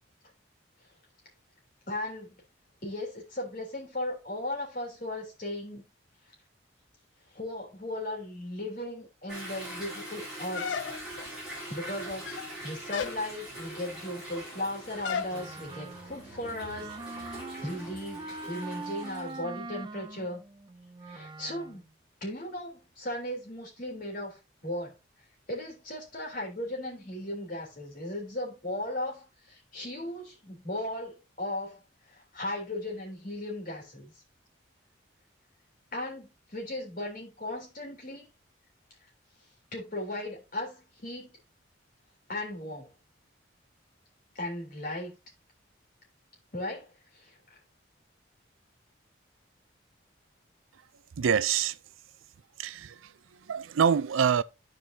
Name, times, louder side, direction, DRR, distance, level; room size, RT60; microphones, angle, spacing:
voice 1, 1.9-2.4 2.8-5.9 7.3-10.8 11.7-20.4 21.0-21.8 22.2-25.0 25.5-34.1 35.9-38.3 39.7-41.3 42.3-42.9 44.3-45.2 46.5-47.6, left 1 dB, 45° left, 3.3 m, -37 dB
Toilet flush / Drip / Trickle dribble, 9.3-19.4, right 1 dB, 5° right, 4.4 m, -43 dB
sound 1, 10.5-11.3 12.1-12.5 12.9-13.2 15.0-15.4, left 7 dB, 70° left, 0.4 m, -33 dB
Wind instrument woodwind instrument, 15.3-21.9, right 3 dB, 25° right, 0.4 m, -43 dB
voice 2, 51.2-51.8 52.6-53.1 53.4-54.4, right 7 dB, 85° right, 0.4 m, -26 dB
14.0 x 4.7 x 2.7 m
head